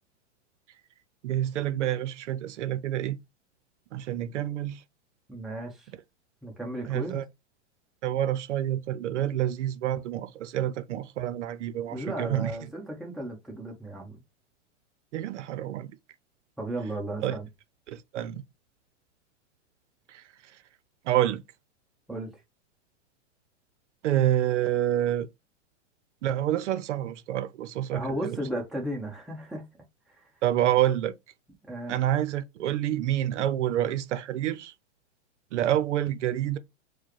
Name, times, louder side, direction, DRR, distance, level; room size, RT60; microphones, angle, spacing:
voice 1, 1.2-3.2 3.9-4.8 6.9-7.2 8.0-12.5 15.1-16.0 17.2-17.4 17.9-18.4 20.1-20.2 21.1-21.4 24.0-25.3 26.2-28.4 30.4-31.1 31.9-34.7 35.5-36.6, right 12 dB, 75° right, 0.6 m, -28 dB
voice 2, 5.3-5.9 6.4-7.2 11.9-14.2 16.6-17.5 22.1-22.3 27.9-29.7 30.1-30.3 31.6-32.0, right 1 dB, ahead, 0.9 m, -35 dB
4.6 x 2.2 x 3.0 m
hypercardioid pair, 130°, 35 cm